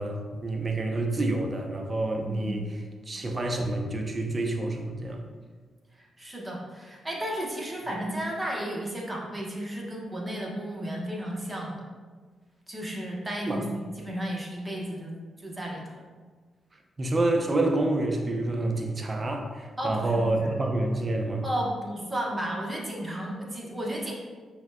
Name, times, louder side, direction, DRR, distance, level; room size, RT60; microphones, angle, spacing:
voice 1, 0.0-5.2 13.5-13.6 17.0-21.4, right 2 dB, 40° right, 3 dB, 0.5 m, -28 dB
voice 2, 2.2-2.6 6.0-11.8 12.7-16.0 19.8-20.5 21.4-24.1, right 1 dB, 20° right, -2 dB, 0.9 m, -33 dB
5.5 x 2.2 x 2.2 m, 1.4 s
hypercardioid pair, 45°, 0 cm